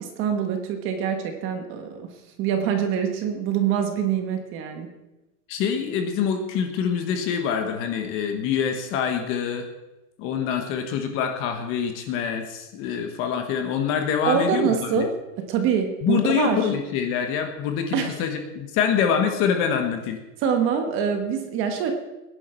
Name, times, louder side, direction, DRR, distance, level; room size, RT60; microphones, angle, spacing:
voice 1, 0.0-2.1 2.4-4.9 14.2-16.7 17.9-18.2 20.4-21.9, right 7 dB, 25° right, 6 dB, 1.3 m, -25 dB
voice 2, 5.5-9.6 10.2-15.1 16.0-20.2, left 7 dB, 25° left, 6 dB, 1.3 m, -25 dB
20.0 x 10.5 x 4.5 m, 1.0 s
supercardioid pair, 165°, 50 cm